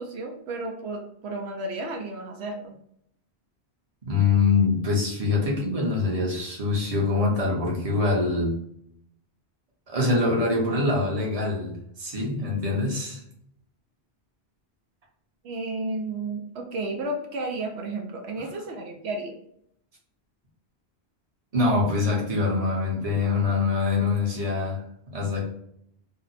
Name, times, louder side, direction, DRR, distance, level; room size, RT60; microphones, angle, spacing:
voice 1, 0.0-2.7 15.4-19.3, right 2 dB, 80° right, 2 dB, 0.9 m, -32 dB
voice 2, 4.0-8.6 9.9-13.2 21.5-24.8 25.1-25.4, left 3 dB, 35° right, -3 dB, 0.9 m, -24 dB
2.7 x 2.1 x 4.0 m, 0.72 s
omnidirectional pair, 1.1 m